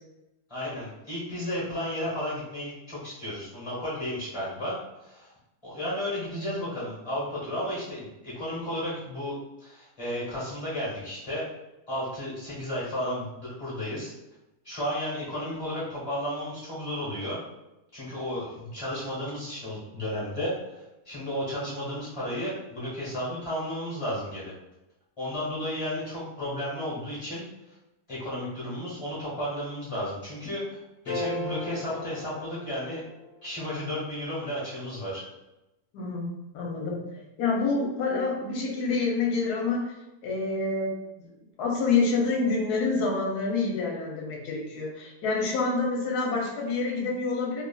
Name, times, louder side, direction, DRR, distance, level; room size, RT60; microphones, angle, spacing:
voice 1, 0.5-5.3 5.6-11.4 11.9-14.1 14.6-17.4 17.9-24.5 25.2-27.4 28.1-30.8 31.0-33.0 33.4-35.2, equal, 25° left, -8 dB, 0.9 m, -33 dB
sound 1, 31.1-33.3, left 1 dB, 55° left, 1.0 m, -35 dB
voice 2, 35.9-37.0 37.4-41.3 41.6-47.6, left 4 dB, 75° left, -1 dB, 1.2 m, -27 dB
3.0 x 2.3 x 2.3 m, 0.94 s
omnidirectional pair, 1.8 m